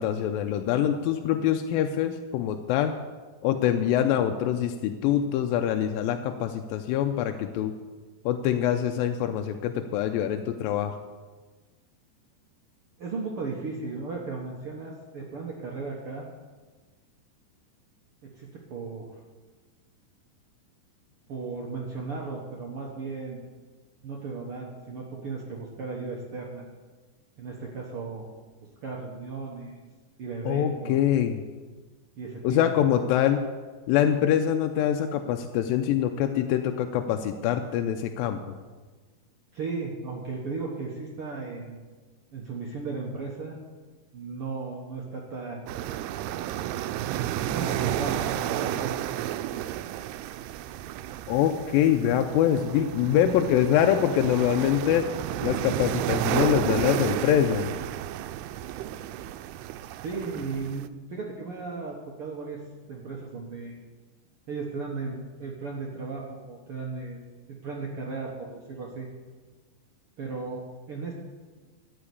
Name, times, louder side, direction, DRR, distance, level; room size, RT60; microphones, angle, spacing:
voice 1, 0.0-3.0 3.4-7.7 8.3-11.0 30.5-31.4 32.4-33.4 33.9-38.6 51.3-55.1 55.4-57.7, left 10 dB, 80° left, 6 dB, 2.2 m, -24 dB
voice 2, 13.0-16.3 18.2-19.1 21.3-23.4 24.0-26.6 27.4-28.3 28.8-29.8 30.2-31.0 32.2-32.6 39.5-41.8 42.3-43.6 44.1-45.6 47.5-49.3 60.0-62.6 62.9-63.7 64.5-67.2 67.6-69.1 70.2-71.2, right 4 dB, 75° right, -2 dB, 1.3 m, -35 dB
sound 1, 45.7-60.9, right 12 dB, 90° right, 2.5 m, -32 dB
14.0 x 5.8 x 8.4 m, 1.3 s
omnidirectional pair, 4.4 m